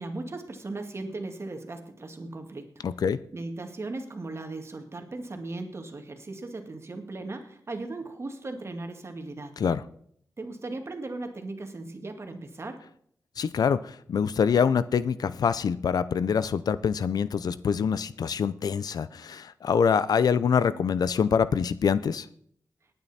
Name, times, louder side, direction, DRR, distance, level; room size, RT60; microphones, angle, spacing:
voice 1, 0.0-2.8 3.3-9.6 10.4-12.9, right 2 dB, 40° right, 5 dB, 2.1 m, -37 dB
voice 2, 2.8-3.2 9.6-9.8 13.4-22.3, left 6 dB, 80° left, 16 dB, 0.6 m, -25 dB
18.5 x 9.2 x 4.3 m, 0.65 s
wide cardioid pair, 80°, 7 cm